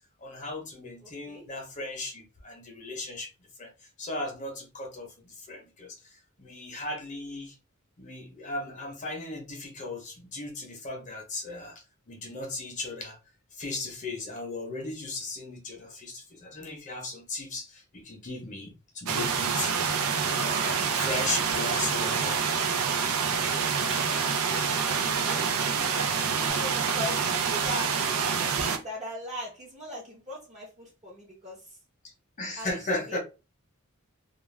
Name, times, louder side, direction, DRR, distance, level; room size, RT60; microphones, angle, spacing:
voice 1, 0.2-3.3 3.6-3.7 4.0-6.0 6.4-7.5 8.0-13.2 13.5-19.7 20.4-22.5 32.4-33.2, left 2 dB, 35° left, 0.7 m, -36 dB
voice 2, 1.0-1.5 24.0-27.9 28.4-31.8 32.6-32.8 33.1-33.2, equal, 35° right, 0.8 m, -40 dB
sound 1, 19.1-28.8, right 6 dB, 85° right, 0.5 m, -27 dB
Rain, 19.8-26.5, right 4 dB, 55° right, 1.0 m, -42 dB
2.3 x 2.2 x 3.1 m
head